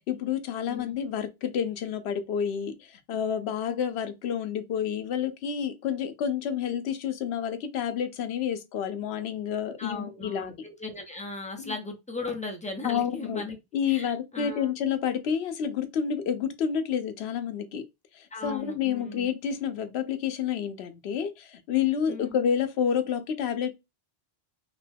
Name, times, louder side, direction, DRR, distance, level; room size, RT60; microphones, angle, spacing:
voice 1, 0.1-10.5 11.6-11.8 12.8-13.4 13.7-17.8 18.1-23.8, left 8 dB, 80° left, 0.8 m, -29 dB
voice 2, 9.8-13.6 13.9-14.7 18.3-19.3 22.1-22.4, left 3 dB, 10° left, 0.4 m, -37 dB
2.9 x 2.2 x 3.3 m
omnidirectional pair, 1.1 m